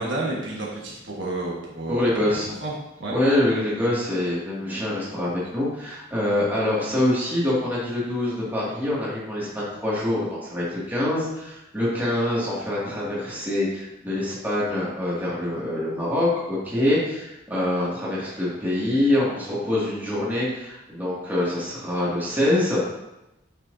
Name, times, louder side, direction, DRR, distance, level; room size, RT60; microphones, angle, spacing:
voice 1, 0.0-2.7 3.0-3.2, right 2 dB, 65° right, -3 dB, 1.4 m, -31 dB
voice 2, 1.9-2.5 3.1-22.8, left 1 dB, 10° right, -8 dB, 2.1 m, -25 dB
8.8 x 6.2 x 2.7 m, 0.94 s
head